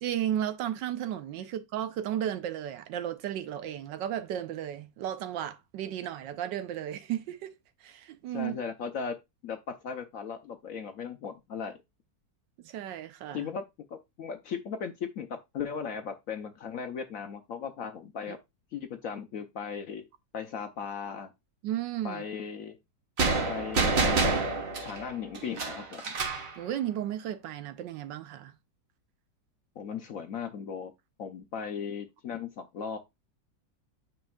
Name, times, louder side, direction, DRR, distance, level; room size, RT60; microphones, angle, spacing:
voice 1, 0.0-7.5 7.8-8.6 12.6-13.5 18.3-18.4 21.6-22.2 26.6-28.5, right 11 dB, 75° right, 1.3 m, -34 dB
voice 2, 8.3-9.2 9.4-9.6 9.8-11.7 13.3-13.6 13.9-18.4 18.7-20.1 20.3-21.3 22.0-22.8 23.5-24.5 24.8-26.1 29.8-30.9 31.2-33.0, left 6 dB, 65° left, 0.9 m, -37 dB
sound 1, 23.2-26.5, right 3 dB, 50° right, 1.7 m, -28 dB
8.9 x 5.2 x 2.3 m
omnidirectional pair, 2.0 m